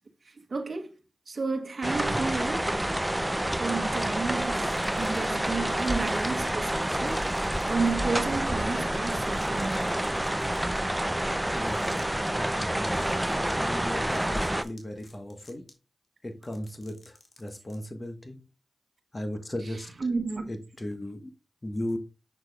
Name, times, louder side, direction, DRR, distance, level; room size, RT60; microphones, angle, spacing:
voice 1, 0.5-0.9 1.3-2.7 3.6-7.2 7.7-10.0 19.6-20.5, right 4 dB, 60° right, 1.1 m, -32 dB
sound 1, 1.8-14.6, right 1 dB, 15° right, 0.6 m, -28 dB
sound 2, 3.9-7.9 8.2-8.3 8.6-10.8 11.5-12.3 12.9-13.2 13.5-13.6 14.0-15.7 16.3-17.7, left 3 dB, 60° left, 2.1 m, -53 dB
voice 2, 11.5-12.0 12.3-15.7 16.2-17.0 17.4-18.4 19.1-19.9 20.5-21.3 21.6-22.0, left 1 dB, 30° left, 1.4 m, -36 dB
6.4 x 6.1 x 2.4 m
cardioid pair, 40°, 0 cm